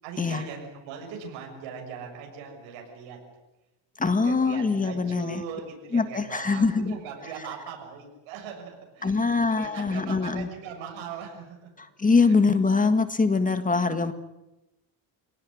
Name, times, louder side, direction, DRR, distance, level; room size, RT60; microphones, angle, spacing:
voice 1, 0.0-3.2 4.2-11.7 12.2-12.3, right 6 dB, 85° right, 1 dB, 6.8 m, -40 dB
voice 2, 4.0-5.4 5.9-7.0 9.0-10.5 11.8-14.1, left 4 dB, 15° left, 10 dB, 1.7 m, -23 dB
27.0 x 18.5 x 9.9 m, 0.97 s
cardioid pair, 125°, 46 cm